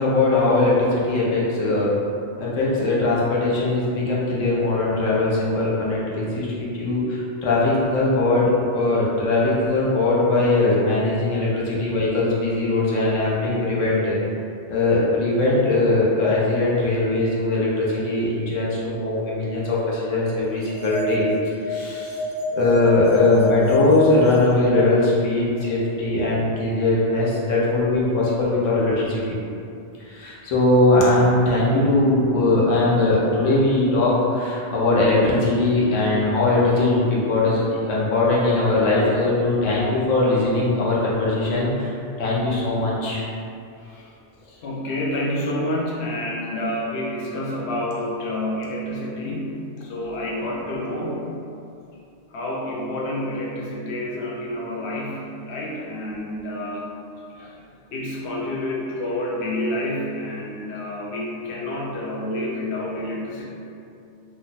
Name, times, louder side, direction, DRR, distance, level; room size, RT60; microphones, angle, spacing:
voice 1, 0.0-1.9 2.4-14.2 14.7-21.2 21.7-22.2 22.5-29.4 30.1-41.9 42.2-43.3 57.4-57.5, left 2 dB, 85° left, -6 dB, 1.1 m, -20 dB
sound 1, 20.6-25.4, left 1 dB, 60° right, 0.7 m, -27 dB
voice 2, 43.8-44.2 44.6-51.3 52.3-56.9 57.9-63.5, left 1 dB, 65° left, -4 dB, 0.8 m, -28 dB
3.0 x 2.2 x 3.9 m, 2.5 s
omnidirectional pair, 1.3 m